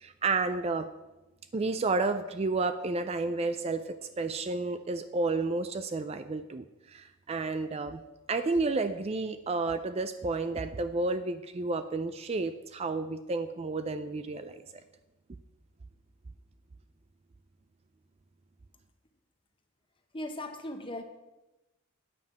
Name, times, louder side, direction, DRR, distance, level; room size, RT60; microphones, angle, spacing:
voice 1, 0.0-0.9 1.5-8.0 8.3-14.8, right 3 dB, 30° right, 10 dB, 0.4 m, -31 dB
voice 2, 20.1-21.0, left 1 dB, 25° left, 6 dB, 1.0 m, -38 dB
9.3 x 5.4 x 7.7 m, 1.0 s
head